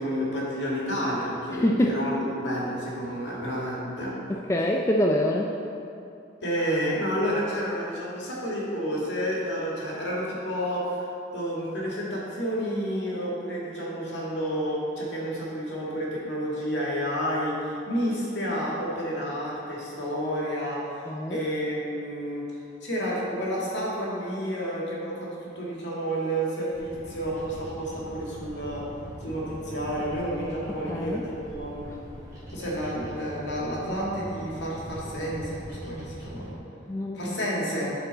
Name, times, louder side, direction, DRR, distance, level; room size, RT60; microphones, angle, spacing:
voice 1, 0.0-4.1 6.4-28.8 29.2-31.9 32.5-36.6 37.1-38.0, equal, 75° left, -5 dB, 1.9 m, -30 dB
voice 2, 1.6-2.0 4.3-5.5 21.1-21.4 30.9-31.2 36.9-37.2, left 1 dB, 15° left, 0 dB, 0.3 m, -25 dB
Bird vocalization bird call bird song, 26.7-36.5, equal, 15° right, 1.8 m, -42 dB
12.5 x 4.5 x 4.0 m, 2.6 s
head